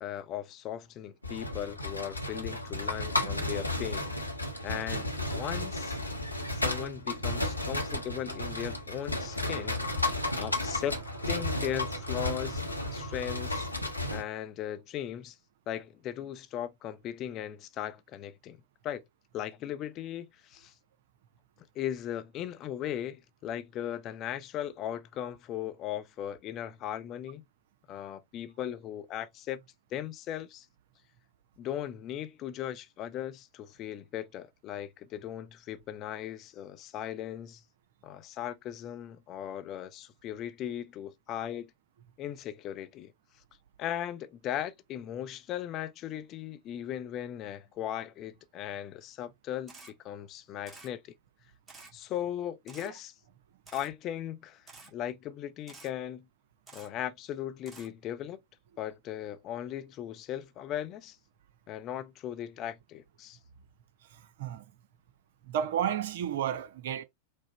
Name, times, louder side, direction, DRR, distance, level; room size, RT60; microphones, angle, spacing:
voice 1, 0.0-4.1 4.6-6.0 6.5-9.8 10.3-11.0 11.3-12.6 12.9-13.7 14.1-15.4 15.7-18.6 18.8-19.0 19.3-20.7 21.7-27.4 27.9-29.6 29.9-30.7 31.6-37.6 38.0-41.7 42.2-43.1 43.8-51.0 51.9-53.1 53.7-54.6 54.9-56.2 56.7-58.4 58.8-61.2 61.7-63.4, left 11 dB, 35° left, 0.5 m, -38 dB
sound 1, 1.2-14.2, left 2 dB, 85° left, 0.9 m, -33 dB
sound 2, 9.3-13.4, right 10 dB, 35° right, 2.0 m, -48 dB
Camera, 49.7-49.9 50.7-50.9 51.7-51.9 52.7-52.9 53.7-53.9 54.7-54.9 55.7-55.9 56.7-56.9 57.7-57.9, right 3 dB, 20° right, 1.5 m, -50 dB
voice 2, 64.1-64.6 65.5-67.0, right 9 dB, 55° right, 0.6 m, -32 dB
5.0 x 2.1 x 4.0 m
figure-of-eight pair, 90°, 0 cm